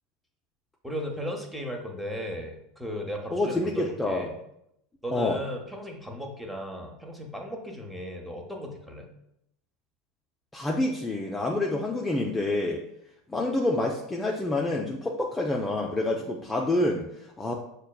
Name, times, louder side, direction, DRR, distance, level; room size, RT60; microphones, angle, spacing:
voice 1, 0.8-4.3 5.0-9.1, equal, 5° right, 1 dB, 0.8 m, -36 dB
voice 2, 3.3-4.3 5.1-5.4 10.5-12.8 13.3-17.5, left 2 dB, 15° left, -1 dB, 0.4 m, -27 dB
6.2 x 2.2 x 2.3 m, 0.78 s
hypercardioid pair, 85°, 0 cm